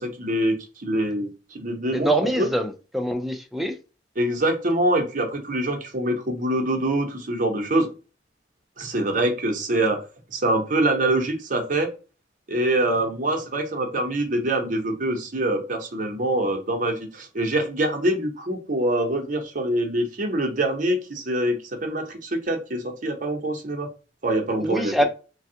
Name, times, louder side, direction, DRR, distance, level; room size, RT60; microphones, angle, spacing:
voice 1, 0.0-2.5 4.2-7.9 8.8-10.0 10.3-11.9 12.5-23.9 24.2-25.0, right 1 dB, 50° right, 0.8 m, -25 dB
voice 2, 1.9-3.8 24.6-25.0, right 1 dB, ahead, 0.3 m, -24 dB
3.3 x 2.3 x 2.7 m
head